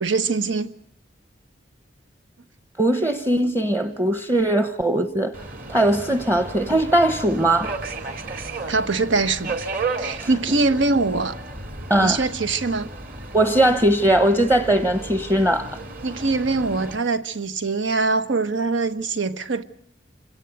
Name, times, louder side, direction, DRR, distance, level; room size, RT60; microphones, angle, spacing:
voice 1, 0.0-0.7 8.7-9.6 10.0-11.4 12.0-12.9 16.0-19.6, right 3 dB, 90° right, 1.2 m, -23 dB
voice 2, 2.8-5.3 5.7-7.8 11.9-12.2 13.3-15.8, right 1 dB, 15° right, 0.9 m, -20 dB
Subway metro underground, 5.3-17.0, right 3 dB, 50° right, 2.6 m, -34 dB
27.0 x 17.5 x 8.1 m
head